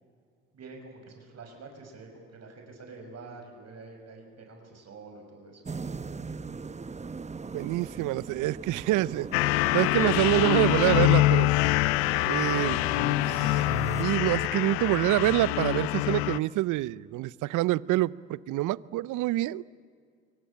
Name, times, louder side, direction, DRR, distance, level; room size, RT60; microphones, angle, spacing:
voice 1, 0.5-5.6, right 3 dB, 55° right, 3 dB, 6.5 m, -47 dB
sound 1, 5.7-14.0, right 4 dB, 20° right, 0.9 m, -40 dB
voice 2, 7.5-11.5 12.3-12.8 13.3-13.6 14.0-19.6, right 16 dB, 70° right, 21 dB, 0.7 m, -26 dB
sound 2, 9.3-16.4, left 19 dB, 90° left, 0.6 m, -25 dB
26.0 x 24.0 x 8.6 m, 2.1 s
hypercardioid pair, 60°, 31 cm